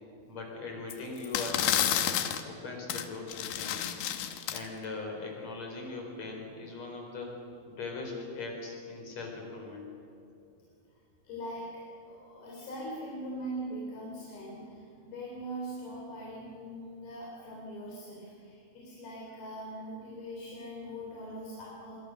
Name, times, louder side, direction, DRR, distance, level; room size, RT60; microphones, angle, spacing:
voice 1, 0.3-2.1 2.5-3.9 4.5-7.3 7.7-9.9, left 3 dB, 45° left, 1 dB, 5.8 m, -40 dB
sound 1, 0.9-1.0 1.2-2.4 2.9-3.0 3.3-4.6, left 11 dB, 85° left, 3.3 m, -30 dB
voice 2, 11.2-22.0, right 1 dB, 70° left, -3 dB, 5.5 m, -41 dB
27.5 x 24.0 x 6.8 m, 2.7 s
omnidirectional pair, 4.6 m